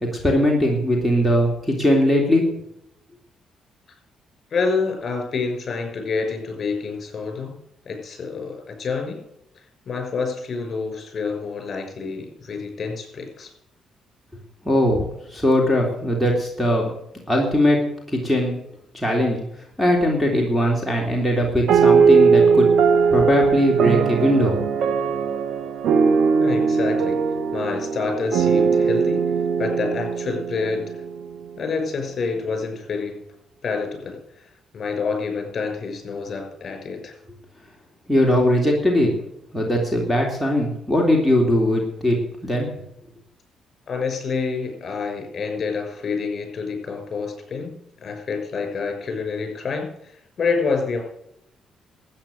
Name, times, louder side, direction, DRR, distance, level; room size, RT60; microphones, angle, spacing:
voice 1, 0.2-2.4 14.6-15.0 15.3-16.9 17.3-17.8 18.1-18.5 18.9-19.4 19.8-22.7 23.1-24.6 38.1-39.1 39.5-42.2 42.4-42.7, equal, ahead, -2 dB, 3.3 m, -20 dB
voice 2, 4.5-7.5 7.8-9.2 9.9-13.5 26.4-27.2 27.5-29.2 29.6-31.0 31.6-33.2 33.6-37.2 43.9-47.7 48.0-51.0, left 4 dB, 45° left, 4 dB, 5.8 m, -27 dB
sound 1, 21.7-31.4, right 5 dB, 75° right, 1.4 m, -19 dB
13.0 x 9.1 x 6.5 m, 0.78 s
cardioid pair, 90°, 0 cm